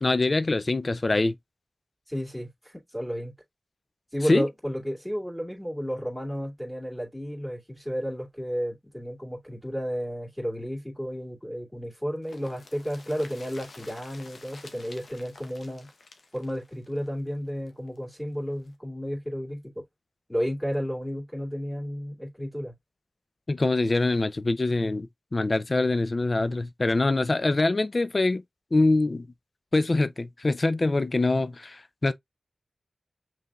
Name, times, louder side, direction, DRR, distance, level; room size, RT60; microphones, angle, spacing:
voice 1, 0.0-1.4 4.3-4.5 23.5-28.4 28.7-29.3 29.7-32.1, left 2 dB, 45° left, 0.4 m, -24 dB
voice 2, 2.1-3.3 4.1-15.9 16.3-19.6 20.3-22.7, equal, 5° left, 2.5 m, -32 dB
sound 1, 12.2-18.0 18.3-18.4 18.6-18.7, left 3 dB, 75° left, 0.9 m, -50 dB
5.8 x 3.3 x 2.4 m
cardioid pair, 45°, 0 cm